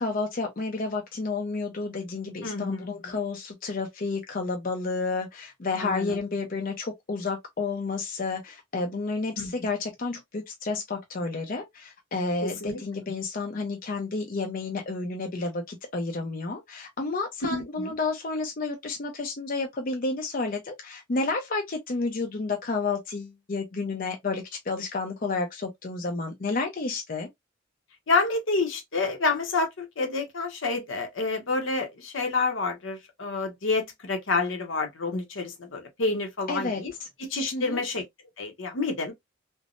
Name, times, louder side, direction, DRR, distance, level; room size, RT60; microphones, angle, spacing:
voice 1, 0.0-27.3 36.5-37.1 37.5-37.8, left 3 dB, 45° left, 0.5 m, -31 dB
voice 2, 2.4-3.2 5.8-6.2 9.4-9.5 12.4-12.8 17.5-17.9 28.1-36.9 37.2-38.0 38.4-39.1, left 3 dB, 75° left, 0.9 m, -28 dB
3.4 x 2.0 x 2.5 m
head